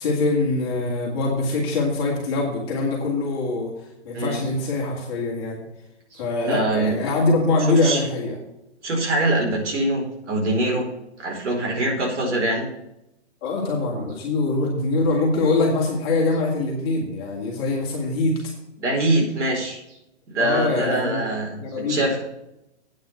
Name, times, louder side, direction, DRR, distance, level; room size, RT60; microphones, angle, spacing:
voice 1, 0.0-3.7 4.0-5.6 6.2-8.3 13.4-18.3 20.4-21.2 21.6-22.1, left 3 dB, 20° left, -3 dB, 2.5 m, -23 dB
voice 2, 6.1-7.0 7.7-8.1 8.8-10.9 11.2-12.7 18.8-20.0 20.3-22.2, right 1 dB, 85° right, 1 dB, 4.4 m, -24 dB
8.9 x 5.9 x 8.1 m, 0.86 s
hypercardioid pair, 180°, 35 cm